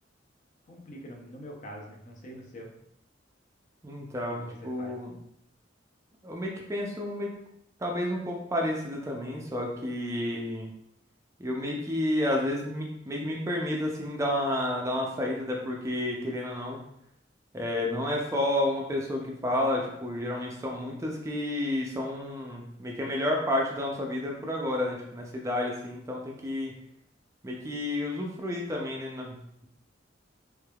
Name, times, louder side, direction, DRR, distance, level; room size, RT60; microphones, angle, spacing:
voice 1, 0.7-2.7 4.0-5.0, equal, 40° left, 0 dB, 0.6 m, -45 dB
voice 2, 3.8-5.1 6.2-7.3 7.8-10.7 11.4-16.8 17.5-26.7 27.4-29.7, left 1 dB, 15° right, -1 dB, 0.4 m, -31 dB
3.3 x 3.2 x 2.3 m, 0.73 s
head